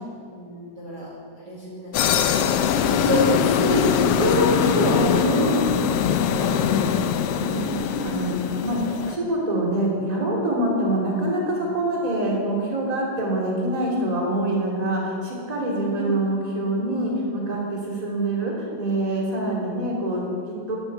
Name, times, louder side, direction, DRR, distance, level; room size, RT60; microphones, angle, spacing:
voice 1, 0.3-1.1 1.3-1.9 2.6-5.7 6.4-7.5 15.9-16.2, equal, 35° right, -6 dB, 2.4 m, -27 dB
sound 1, 1.9-9.2, left 8 dB, 80° left, 1.3 m, -22 dB
voice 2, 5.2-5.8 7.5-20.8, right 1 dB, 15° right, -2 dB, 2.7 m, -25 dB
11.5 x 11.0 x 8.0 m, 2.2 s
omnidirectional pair, 3.4 m